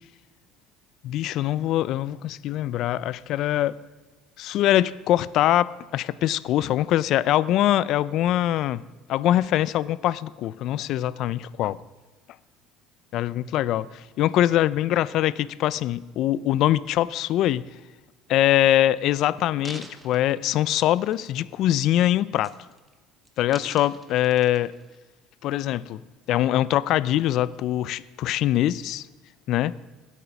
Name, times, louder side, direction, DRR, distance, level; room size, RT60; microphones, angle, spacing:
voice 1, 1.0-3.8 4.4-8.8 9.1-11.8 13.1-17.6 18.3-22.5 23.4-24.7 25.4-26.0 26.3-29.1 29.5-29.7, left 13 dB, 60° left, 0.4 m, -23 dB
sound 1, 19.4-21.5 21.8-22.1 22.4-22.9 23.3-25.0 25.6-25.7, right 2 dB, 10° right, 1.2 m, -47 dB
16.5 x 8.3 x 5.8 m
cardioid pair, 120°, 0 cm